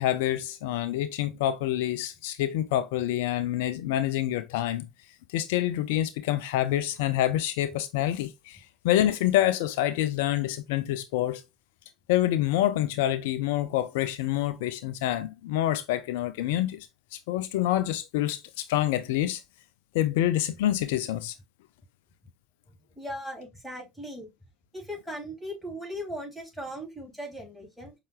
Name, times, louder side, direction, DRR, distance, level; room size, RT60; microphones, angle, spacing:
voice 1, 0.0-4.9 5.3-11.4 12.1-19.4 19.9-21.3, left 13 dB, 70° left, 0.3 m, -27 dB
voice 2, 23.0-24.3 24.7-27.9, equal, 5° left, 2.9 m, -38 dB
5.4 x 2.3 x 3.1 m
hypercardioid pair, 70°, 0 cm